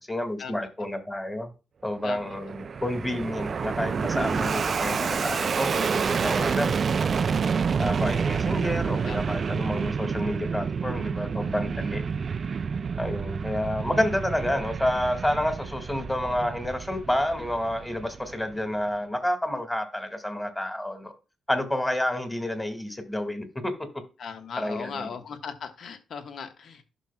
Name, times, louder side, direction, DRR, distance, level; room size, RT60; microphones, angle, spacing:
voice 1, 0.1-1.5 1.8-6.7 7.8-12.0 13.0-21.1 21.5-23.9 24.5-25.2, left 1 dB, 10° left, 2.0 m, -29 dB
voice 2, 2.0-2.3 9.1-9.3 24.2-26.8, left 6 dB, 65° left, 1.4 m, -38 dB
Fixed-wing aircraft airplane, 2.0-18.6, right 6 dB, 45° right, 0.4 m, -28 dB
11.5 x 6.1 x 2.3 m
cardioid pair, 95°, 0 cm